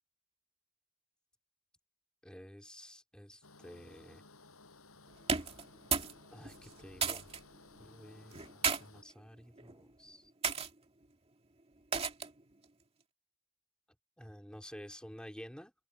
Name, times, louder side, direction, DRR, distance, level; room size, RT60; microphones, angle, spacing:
voice 1, 2.2-4.2 6.3-7.3 7.8-10.3 14.2-15.7, equal, 5° left, 3.6 m, -51 dB
sound 1, 3.4-9.0, left 3 dB, 70° left, 7.9 m, -58 dB
sound 2, 5.2-6.2 6.4-7.4 8.3-8.8 9.6-9.8 10.4-10.7 11.9-12.4, right 5 dB, 25° right, 2.2 m, -33 dB
open air
head